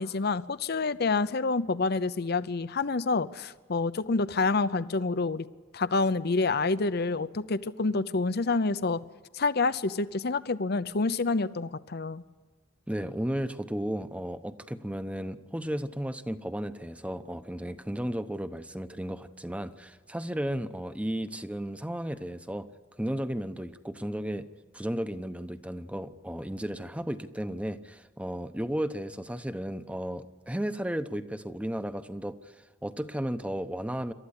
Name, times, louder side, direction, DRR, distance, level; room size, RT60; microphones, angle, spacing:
voice 1, 0.0-5.5 5.7-9.0 9.3-12.2, left 3 dB, 55° left, 15 dB, 0.7 m, -28 dB
voice 2, 12.9-22.7 23.0-24.5 24.7-32.4 32.8-34.1, equal, 5° right, 10 dB, 0.9 m, -34 dB
27.5 x 13.5 x 9.9 m, 1.3 s
head